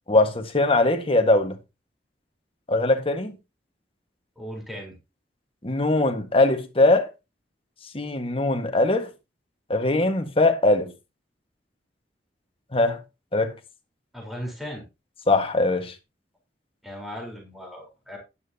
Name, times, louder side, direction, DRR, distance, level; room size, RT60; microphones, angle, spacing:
voice 1, 0.1-1.6 2.7-3.4 5.6-7.1 7.9-9.1 9.7-10.9 12.7-13.0 13.3-13.5 15.3-15.9, left 2 dB, 30° left, 1.6 m, -21 dB
voice 2, 4.4-5.0 14.1-14.8 16.8-18.2, equal, ahead, 4.0 m, -37 dB
12.0 x 10.0 x 2.8 m
head